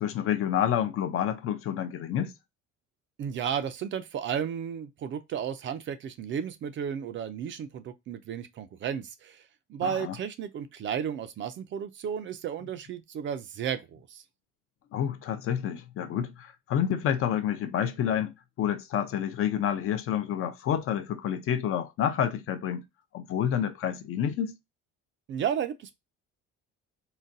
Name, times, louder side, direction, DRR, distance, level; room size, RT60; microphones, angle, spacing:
voice 1, 0.0-2.3 9.8-10.2 14.9-22.9 23.1-24.5, left 9 dB, 50° left, 0.5 m, -29 dB
voice 2, 3.2-9.4 9.7-14.2 25.3-26.0, right 8 dB, 45° right, 0.4 m, -33 dB
3.9 x 2.2 x 2.5 m
cardioid pair, 125°, 29 cm